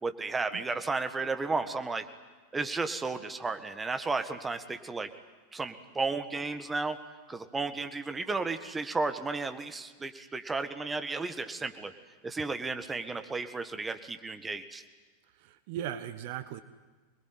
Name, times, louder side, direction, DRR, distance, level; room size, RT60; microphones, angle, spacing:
voice 1, 0.0-2.1 2.5-5.1 5.5-7.0 7.3-11.9 12.2-14.8, right 3 dB, 15° right, 9 dB, 1.7 m, -33 dB
voice 2, 15.4-16.6, right 10 dB, 50° right, 12 dB, 1.1 m, -38 dB
26.0 x 21.0 x 9.6 m, 1.4 s
figure-of-eight pair, 90°, 0 cm